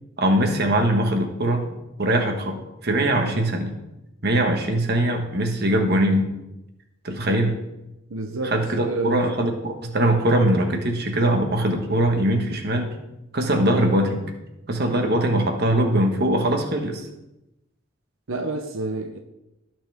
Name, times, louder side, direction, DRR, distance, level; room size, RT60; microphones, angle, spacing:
voice 1, 0.2-3.7 4.2-6.3 7.0-7.5 8.4-12.9 13.3-14.3 14.7-17.1, right 1 dB, 55° right, 4 dB, 1.5 m, -22 dB
voice 2, 8.1-9.3 18.3-19.2, right 2 dB, 90° right, 5 dB, 0.8 m, -29 dB
17.5 x 6.1 x 3.6 m, 0.94 s
head